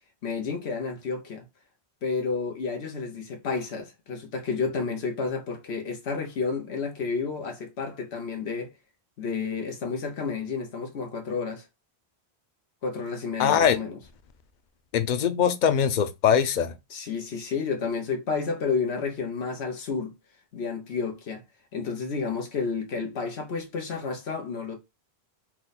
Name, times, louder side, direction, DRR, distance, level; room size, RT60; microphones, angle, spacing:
voice 1, 0.2-1.4 2.0-8.7 9.2-11.7 12.8-14.0 16.9-20.1 20.5-21.4 21.7-24.8, left 5 dB, 90° left, 1.2 m, -31 dB
voice 2, 13.4-13.8 14.9-16.7, left 8 dB, 55° left, 0.6 m, -22 dB
4.4 x 2.1 x 4.0 m
omnidirectional pair, 1.1 m